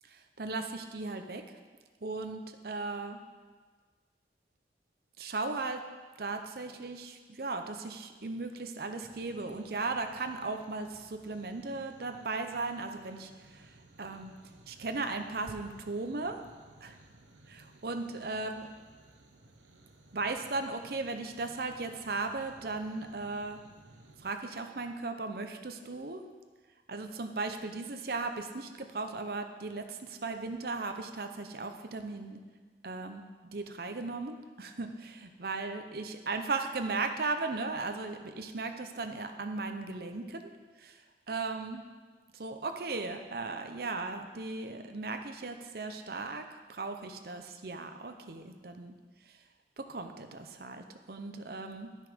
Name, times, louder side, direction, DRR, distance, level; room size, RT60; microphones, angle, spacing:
voice 1, 0.0-1.4 2.0-3.2 5.2-5.8 6.2-14.3 14.7-16.4 16.8-17.0 17.5-18.7 20.1-23.6 24.2-26.2 26.9-32.4 32.8-40.5 40.8-41.8 42.3-48.9 49.3-49.4 49.8-51.9, right 3 dB, 55° right, 6 dB, 0.7 m, -37 dB
sound 1, 9.0-24.3, right 1 dB, 90° right, 0.9 m, -57 dB
11.0 x 6.4 x 5.1 m, 1.4 s
head